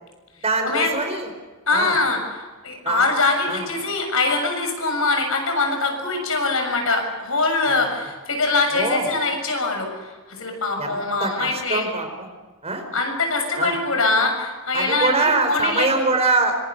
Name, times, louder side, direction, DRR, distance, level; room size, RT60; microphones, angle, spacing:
voice 1, 0.4-1.3 1.7-2.0 2.8-3.0 3.5-3.7 7.7-7.8 8.7-9.1 10.8-12.3 12.6-12.9 13.6-13.7 14.7-16.6, right 3 dB, 30° right, 5 dB, 4.7 m, -23 dB
voice 2, 1.7-2.2 2.6-11.8 12.9-15.9, left 3 dB, 75° left, 4 dB, 6.8 m, -23 dB
25.5 x 24.0 x 6.8 m, 1.3 s
head